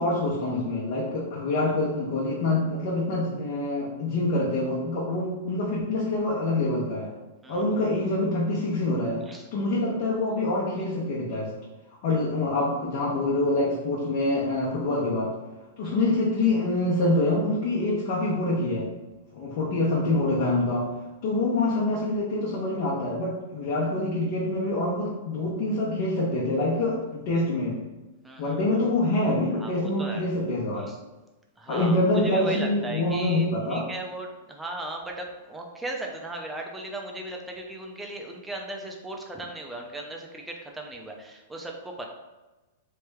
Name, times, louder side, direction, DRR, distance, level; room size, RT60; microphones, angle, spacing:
voice 1, 0.0-7.1 7.5-9.2 9.5-11.5 12.0-15.3 15.8-18.9 19.3-20.9 21.2-27.8 28.4-30.9 31.7-33.8, left 2 dB, 55° left, -5 dB, 0.7 m, -26 dB
voice 2, 28.2-28.8 29.6-30.3 30.8-31.0 31.6-42.1, right 1 dB, 10° right, 1 dB, 0.5 m, -37 dB
3.3 x 2.2 x 3.3 m, 1.1 s
hypercardioid pair, 125°, 0 cm